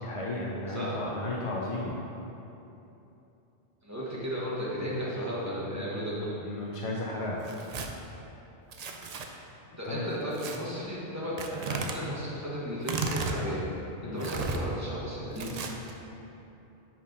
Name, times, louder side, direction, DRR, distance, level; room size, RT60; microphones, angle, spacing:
voice 1, 0.0-2.0 4.7-5.0 5.6-6.0 6.4-7.5 7.7-7.9 9.8-10.1 14.0-14.4, left 2 dB, 45° left, -3 dB, 0.4 m, -35 dB
voice 2, 3.8-6.3 9.8-13.6 14.1-15.6, equal, 15° right, -7 dB, 1.3 m, -34 dB
Tearing, 7.4-7.9 8.7-9.3 10.3-10.6 11.4-12.0 12.8-13.4 14.2-14.6 15.3-15.9, right 4 dB, 55° right, 0.4 m, -34 dB
5.7 x 4.3 x 5.3 m, 2.9 s
omnidirectional pair, 1.2 m